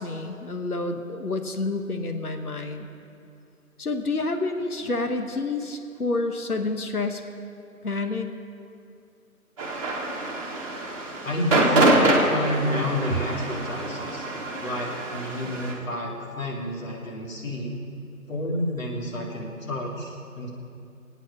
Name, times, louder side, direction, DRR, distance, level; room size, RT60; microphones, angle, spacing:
voice 1, 0.0-2.9 3.8-7.2 7.8-8.3, left 3 dB, 85° left, 6 dB, 1.3 m, -29 dB
sound 1, 9.6-15.7, right 2 dB, 25° right, 1.7 m, -25 dB
voice 2, 11.2-14.3 14.6-17.8 18.3-20.5, left 1 dB, 60° left, -2 dB, 3.2 m, -30 dB
21.5 x 9.1 x 5.2 m, 2.6 s
figure-of-eight pair, 165°, 43 cm